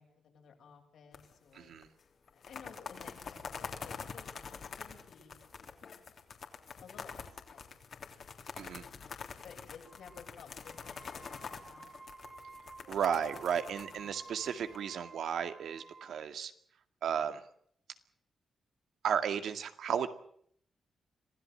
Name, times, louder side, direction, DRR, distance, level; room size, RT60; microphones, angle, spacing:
voice 1, 0.0-1.8 2.3-4.3 4.8-5.5 6.8-7.7 8.8-12.0 13.9-14.3, left 6 dB, 75° left, 3 dB, 6.8 m, -55 dB
sound 1, 1.1-1.6 1.8-1.9 2.3-14.8, left 6 dB, 55° left, 3.3 m, -46 dB
voice 2, 1.5-1.9 8.6-8.8 12.9-16.5 17.0-17.4 19.0-20.1, right 8 dB, 80° right, 9 dB, 2.1 m, -34 dB
sound 2, 9.8-10.3 10.6-16.2, right 3 dB, 30° right, 3.5 m, -53 dB
26.5 x 16.5 x 7.8 m, 0.64 s
cardioid pair, 125°, 0 cm